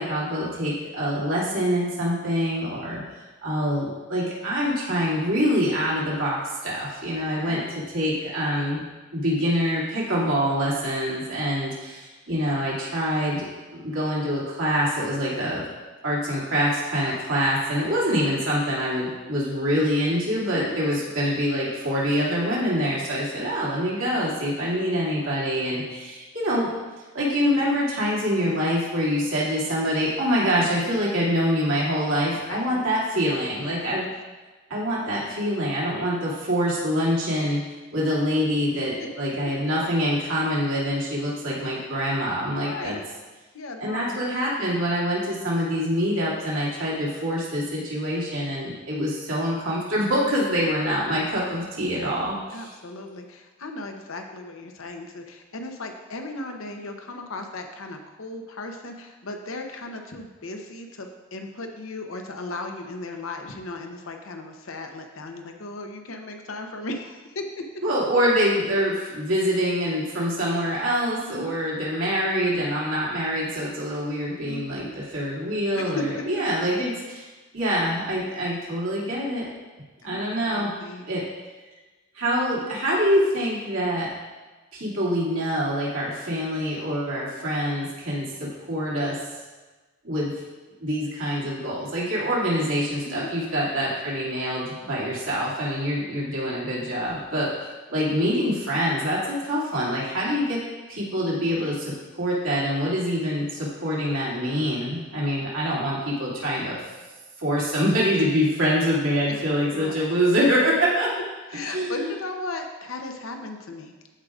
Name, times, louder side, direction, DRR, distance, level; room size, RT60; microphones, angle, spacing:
voice 1, 0.0-3.0 3.4-8.8 9.1-15.6 16.0-26.7 27.1-34.1 34.7-37.6 37.9-43.0 43.8-52.7 67.8-77.2 77.5-79.5 80.0-80.7 81.1-81.3 82.1-84.1 84.7-89.2 90.0-90.3 90.8-100.6 100.9-106.8 107.4-111.1 111.6-112.1, equal, 85° right, -6 dB, 2.4 m, -25 dB
voice 2, 32.3-32.8 33.6-33.9 39.0-39.1 42.5-43.1 43.5-44.2 52.5-67.6 71.2-71.5 74.5-74.9 75.7-76.2 80.0-81.1 93.0-93.3 109.3-109.4 109.7-110.0 111.5-113.9, left 2 dB, 85° left, 4 dB, 0.8 m, -36 dB
14.0 x 4.9 x 2.5 m, 1.2 s
head